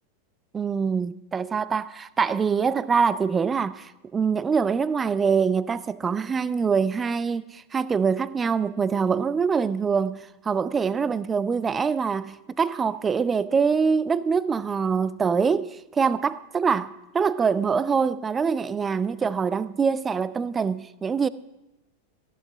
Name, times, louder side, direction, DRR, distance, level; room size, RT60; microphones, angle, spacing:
voice 1, 0.5-21.3, right 6 dB, 20° right, 0.5 m, -24 dB
15.5 x 8.1 x 7.3 m
figure-of-eight pair, 90°, 0 cm